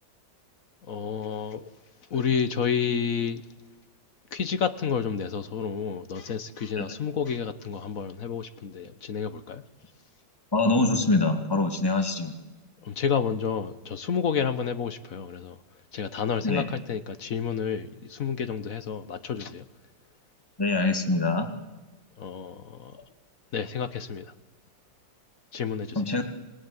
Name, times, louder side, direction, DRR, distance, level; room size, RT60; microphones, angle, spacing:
voice 1, 0.9-1.6 2.1-3.4 4.3-9.6 12.8-15.5 15.9-19.6 22.2-22.9 23.5-24.2 25.5-26.0, left 6 dB, 50° left, 1.4 m, -30 dB
voice 2, 10.5-12.3 16.4-16.7 20.6-21.5 25.9-26.2, left 2 dB, 10° left, 2.3 m, -24 dB
26.0 x 20.0 x 9.8 m
omnidirectional pair, 2.0 m